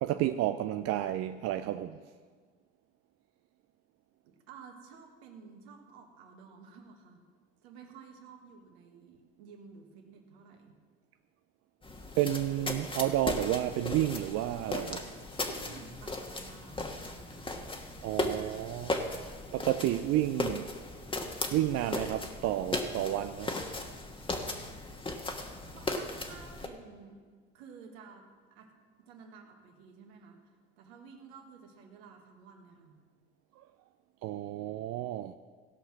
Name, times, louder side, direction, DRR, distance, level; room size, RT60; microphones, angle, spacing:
voice 1, 0.0-2.0 12.2-15.1 18.0-19.1 19.5-20.7 21.5-23.6 34.2-35.4, right 13 dB, 50° right, 0.5 m, -31 dB
voice 2, 4.2-7.2 7.6-10.8 15.4-17.7 25.7-27.2 27.5-28.7 29.0-30.4 30.8-33.0, right 5 dB, 70° right, 1.7 m, -53 dB
sound 1, 11.8-26.7, left 2 dB, 15° left, 1.3 m, -37 dB
16.5 x 5.6 x 5.9 m
hypercardioid pair, 70°, 33 cm